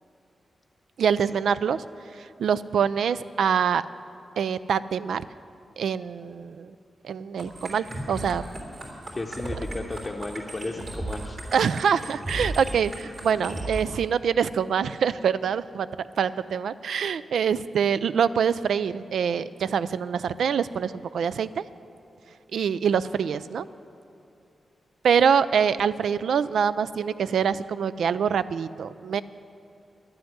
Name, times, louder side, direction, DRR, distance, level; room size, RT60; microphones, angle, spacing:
voice 1, 1.0-1.8 2.4-3.8 4.4-5.2 5.8-6.7 7.0-8.4 11.5-15.9 16.2-21.6 22.5-23.7 25.0-29.2, right 7 dB, 90° right, 15 dB, 0.3 m, -25 dB
sound 1, 7.4-13.8, right 1 dB, 50° right, 3.2 m, -35 dB
voice 2, 9.1-11.4, left 2 dB, 20° left, -1 dB, 0.7 m, -34 dB
11.0 x 7.8 x 9.7 m, 2.7 s
wide cardioid pair, 110°, 0 cm